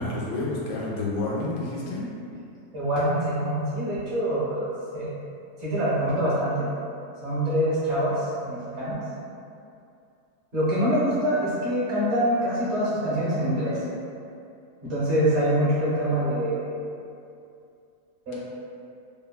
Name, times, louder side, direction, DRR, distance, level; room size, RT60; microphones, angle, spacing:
voice 1, 0.0-2.0, left 2 dB, 85° left, -5 dB, 1.2 m, -29 dB
voice 2, 2.7-4.7 4.9-5.1 5.6-6.7 7.2-9.0 10.5-13.8 14.8-16.7 18.3-18.4, right 1 dB, 55° right, -10 dB, 0.9 m, -25 dB
3.2 x 2.0 x 2.2 m, 2.5 s
omnidirectional pair, 1.8 m